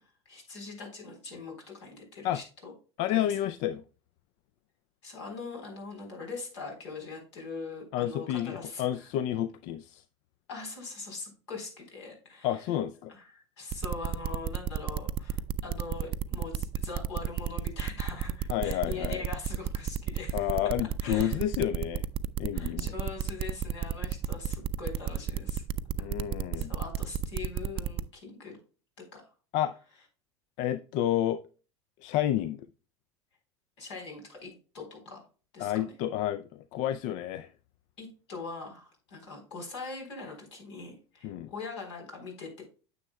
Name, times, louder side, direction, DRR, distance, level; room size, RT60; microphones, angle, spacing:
voice 1, 0.0-2.7 3.1-3.5 5.0-9.1 10.5-12.8 13.1-21.5 22.5-25.6 26.5-28.6 29.1-29.2 29.7-30.1 33.8-35.2 35.5-36.0 38.0-42.6, left 4 dB, 75° left, 3.8 m, -42 dB
voice 2, 3.0-3.8 7.9-10.0 12.4-13.1 18.5-19.3 20.3-22.1 22.4-22.9 26.0-26.7 29.5-29.7 30.6-31.4 32.0-32.6 35.6-37.5 41.2-41.5, left 12 dB, 55° left, 0.5 m, -30 dB
sound 1, 13.7-28.0, right 10 dB, 40° right, 0.4 m, -31 dB
9.6 x 7.0 x 2.2 m
hypercardioid pair, 75°, 15 cm